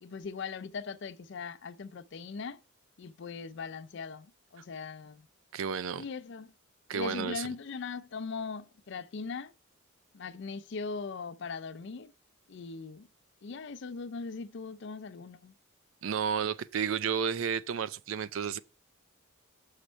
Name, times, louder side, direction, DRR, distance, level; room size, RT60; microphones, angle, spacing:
voice 1, 0.0-2.6 3.0-5.3 6.0-6.5 6.9-9.5 10.1-12.1 12.5-13.1 13.4-15.5, left 4 dB, 55° left, 0.4 m, -40 dB
voice 2, 5.5-6.0 6.9-7.5 16.0-18.6, right 7 dB, 70° right, 0.4 m, -32 dB
6.5 x 5.1 x 4.5 m
head